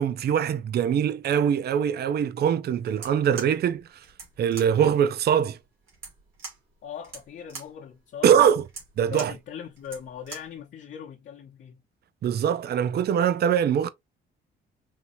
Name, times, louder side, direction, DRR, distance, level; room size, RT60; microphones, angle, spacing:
voice 1, 0.0-3.9 4.4-5.6 8.2-8.6 9.0-9.3 12.2-13.9, right 8 dB, 55° right, 0.5 m, -22 dB
sound 1, 2.9-10.6, right 4 dB, 80° right, 2.7 m, -44 dB
voice 2, 6.8-8.3 9.1-11.8, left 8 dB, 60° left, 1.0 m, -40 dB
5.4 x 2.9 x 2.6 m
cardioid pair, 90°, 20 cm